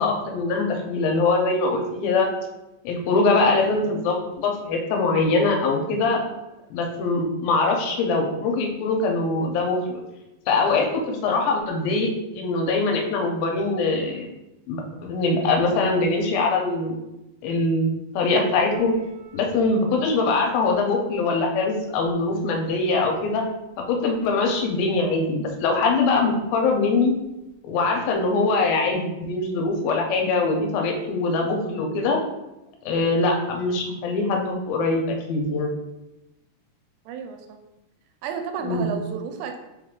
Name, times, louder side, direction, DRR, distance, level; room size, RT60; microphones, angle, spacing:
voice 1, 0.0-2.3 2.8-6.2 6.7-10.0 10.5-14.3 14.7-17.0 17.4-19.0 19.3-23.4 23.9-27.1 27.6-32.2 32.9-35.7 38.6-38.9, left 3 dB, 85° left, 2 dB, 2.4 m, -23 dB
Piano, 18.7-24.0 24.9-25.0 25.5-25.6 26.4-26.5 27.5-27.6, right 5 dB, 70° right, 2.0 m, -40 dB
voice 2, 37.1-37.6 38.2-39.6, right 7 dB, 90° right, 5 dB, 2.3 m, -32 dB
5.4 x 3.6 x 2.4 m, 0.94 s
omnidirectional pair, 4.1 m